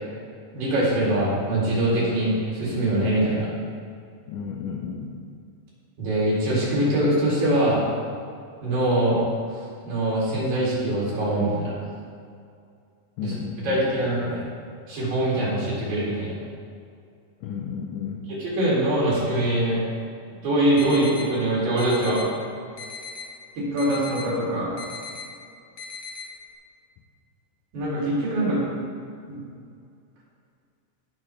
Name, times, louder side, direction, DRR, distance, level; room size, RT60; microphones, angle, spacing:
voice 1, 0.5-3.5 6.0-7.8 8.6-9.2 9.9-11.7 13.2-13.3 13.6-14.4 14.9-16.3 18.3-19.8 20.4-22.2 23.6-24.8 27.7-28.7 29.3-29.4, right 1 dB, 90° right, -7 dB, 4.6 m, -23 dB
voice 2, 4.3-5.2 13.2-13.8 17.4-18.3, left 6 dB, 75° left, 1 dB, 2.0 m, -33 dB
sound 1, 20.8-21.3 21.8-22.3 22.8-23.3 23.8-24.3 24.8-25.2 25.8-26.2, left 5 dB, 60° left, 1.2 m, -37 dB
17.0 x 6.1 x 3.2 m, 2.4 s
omnidirectional pair, 3.7 m